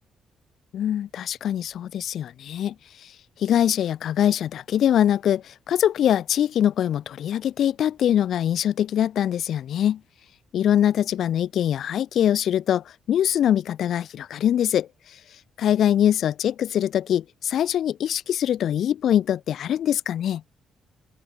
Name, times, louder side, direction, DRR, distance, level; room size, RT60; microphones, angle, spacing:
voice 1, 0.7-2.7 3.0-3.1 3.4-10.0 10.5-15.2 15.6-20.4, left 10 dB, 70° left, 0.5 m, -23 dB
cardioid pair, 90°, 0 cm